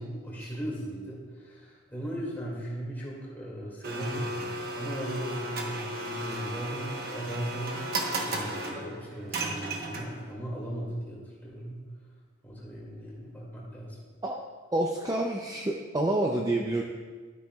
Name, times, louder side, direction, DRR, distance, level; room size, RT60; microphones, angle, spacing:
voice 1, 0.0-7.9 8.1-11.8 12.4-14.0, right 1 dB, 10° left, -5 dB, 2.2 m, -37 dB
Domestic sounds home sounds, 3.8-10.3, right 2 dB, 45° right, 1.0 m, -35 dB
voice 2, 14.7-16.8, right 1 dB, 15° right, 1 dB, 0.4 m, -28 dB
12.0 x 8.5 x 2.3 m, 1.5 s
head